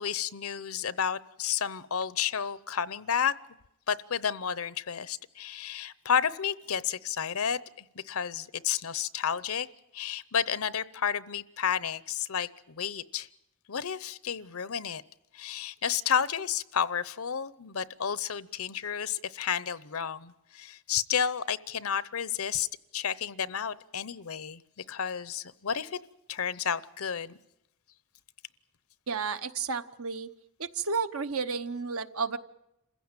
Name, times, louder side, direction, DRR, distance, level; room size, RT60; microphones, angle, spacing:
voice 1, 0.0-3.3 3.9-9.7 9.9-13.3 13.7-15.0 15.3-22.7 22.9-24.6 24.9-26.0 26.3-27.4, left 8 dB, 75° left, 0.8 m, -31 dB
voice 2, 29.1-30.3 30.6-32.4, right 5 dB, 75° right, 1.0 m, -32 dB
27.5 x 15.5 x 9.0 m
head